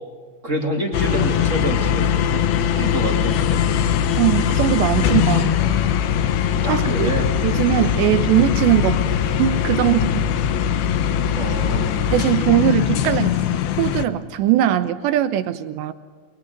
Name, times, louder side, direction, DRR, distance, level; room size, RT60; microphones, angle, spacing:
voice 1, 0.4-2.4 2.7-3.6 6.6-7.3 11.3-12.1, right 1 dB, 20° right, 2 dB, 2.3 m, -27 dB
sound 1, 0.9-14.1, left 8 dB, 70° left, 2.7 m, -21 dB
voice 2, 4.2-5.6 6.7-7.1 7.4-9.0 9.4-10.3 12.1-15.9, right 12 dB, 80° right, 11 dB, 3.1 m, -20 dB
28.0 x 22.0 x 9.5 m, 1.5 s
omnidirectional pair, 5.2 m